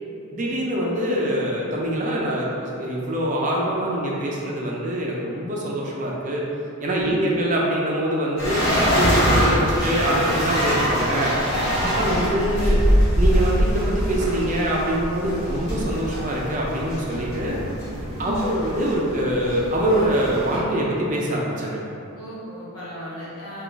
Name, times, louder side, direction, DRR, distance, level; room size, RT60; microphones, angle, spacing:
voice 1, 0.3-6.4 6.8-8.6 9.0-11.3 11.9-12.8 13.2-17.6 18.2-21.8, right 1 dB, 35° right, -3 dB, 0.5 m, -24 dB
sound 1, 8.4-20.6, equal, 50° left, 1.3 m, -23 dB
voice 2, 10.7-11.0 11.7-12.3 18.1-18.5 22.1-23.6, equal, 80° left, -7 dB, 1.1 m, -37 dB
3.6 x 2.4 x 3.8 m, 2.7 s
head